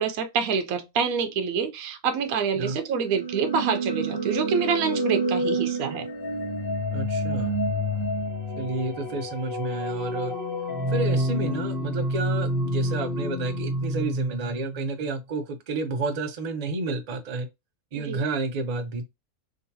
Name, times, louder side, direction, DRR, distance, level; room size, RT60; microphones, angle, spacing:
voice 1, 0.0-6.1 18.0-18.2, right 6 dB, 80° right, 1.1 m, -26 dB
sound 1, 3.0-14.9, equal, 15° left, 1.0 m, -28 dB
voice 2, 6.9-7.6 8.6-10.3 10.9-17.5 17.9-19.0, right 3 dB, 50° right, 0.5 m, -30 dB
3.8 x 2.7 x 2.7 m
omnidirectional pair, 1.5 m